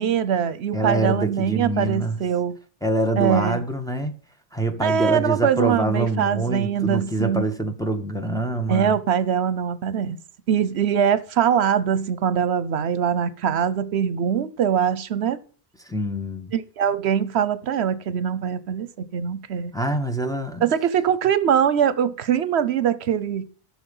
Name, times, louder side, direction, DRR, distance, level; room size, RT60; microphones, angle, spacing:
voice 1, 0.0-2.5 3.2-3.6 4.8-7.4 8.7-10.2 10.5-15.4 16.5-19.7 20.6-23.4, right 8 dB, 80° right, 1.0 m, -22 dB
voice 2, 0.7-2.2 2.8-4.1 4.5-9.0 15.9-16.5 19.7-20.6, right 2 dB, 5° left, 1.2 m, -25 dB
13.5 x 6.3 x 5.5 m
omnidirectional pair, 1.1 m